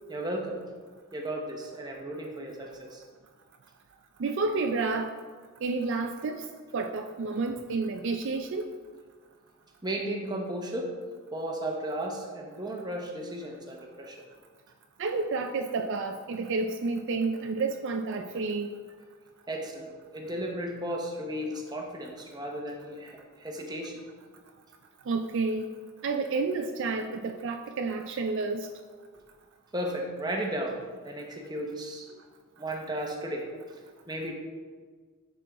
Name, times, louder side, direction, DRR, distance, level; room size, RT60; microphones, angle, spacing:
voice 1, 0.1-0.6 1.1-3.0 9.8-10.9 11.3-14.2 19.5-23.1 23.4-24.0 29.7-32.2 32.6-33.5 34.1-34.3, right 1 dB, 20° right, 1 dB, 0.8 m, -34 dB
voice 2, 4.2-5.1 5.6-6.4 6.7-8.7 15.0-18.8 25.1-25.7 26.0-28.7, right 3 dB, 55° right, 5 dB, 0.4 m, -30 dB
10.0 x 4.5 x 3.5 m, 1.5 s
head